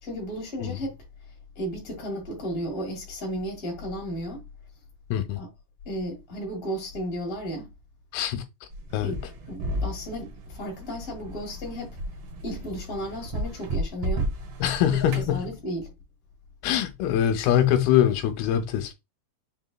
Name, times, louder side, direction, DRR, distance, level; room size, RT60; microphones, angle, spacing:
voice 1, 0.0-1.0 1.6-4.4 5.3-5.5 5.8-7.7 9.0-9.2 9.5-12.0 12.4-14.3 14.9-15.9, equal, 30° left, 1.8 m, -34 dB
voice 2, 5.1-5.4 8.1-8.4 8.9-9.2 14.6-15.4 16.6-18.9, left 10 dB, 80° left, 2.4 m, -23 dB
sound 1, 8.7-15.3, right 1 dB, 80° right, 1.4 m, -33 dB
6.0 x 3.9 x 2.2 m
omnidirectional pair, 4.6 m